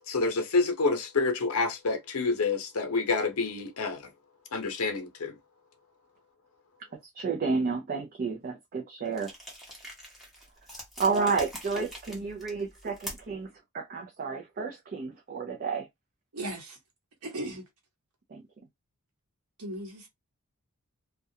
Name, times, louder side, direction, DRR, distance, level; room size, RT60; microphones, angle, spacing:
voice 1, 0.1-4.0 4.5-5.4, left 3 dB, 75° left, 0.7 m, -28 dB
voice 2, 7.1-9.3 11.0-15.9 18.3-18.4, right 4 dB, 40° right, 0.4 m, -31 dB
sound 1, 9.1-13.4, equal, ahead, 0.9 m, -44 dB
voice 3, 16.3-16.8 17.2-17.6 19.6-20.1, right 1 dB, 75° right, 1.0 m, -37 dB
2.4 x 2.1 x 2.7 m
head